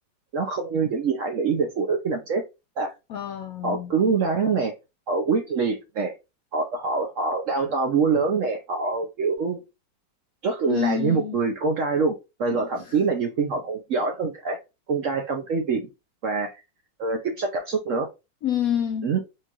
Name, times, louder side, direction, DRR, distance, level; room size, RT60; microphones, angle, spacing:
voice 1, 0.3-2.5 2.8-2.9 3.6-4.7 5.1-6.1 6.5-9.6 10.4-14.6 14.9-15.8 16.2-16.5 17.0-18.1 19.0-19.2, right 4 dB, 65° right, 0.8 m, -25 dB
voice 2, 3.1-3.9 10.7-11.4 12.5-13.0 18.4-19.1, left 9 dB, 70° left, 0.8 m, -28 dB
4.5 x 2.4 x 2.8 m
omnidirectional pair, 1.9 m